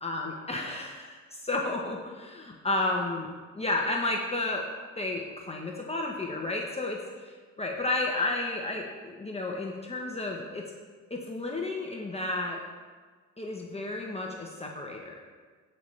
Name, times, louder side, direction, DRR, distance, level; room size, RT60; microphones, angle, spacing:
voice 1, 0.0-3.3 3.5-4.6 5.0-7.0 7.6-10.6 11.1-12.6 13.4-15.2, left 2 dB, 20° left, -1 dB, 1.0 m, -32 dB
16.0 x 5.5 x 3.3 m, 1.5 s
cardioid pair, 90°, 30 cm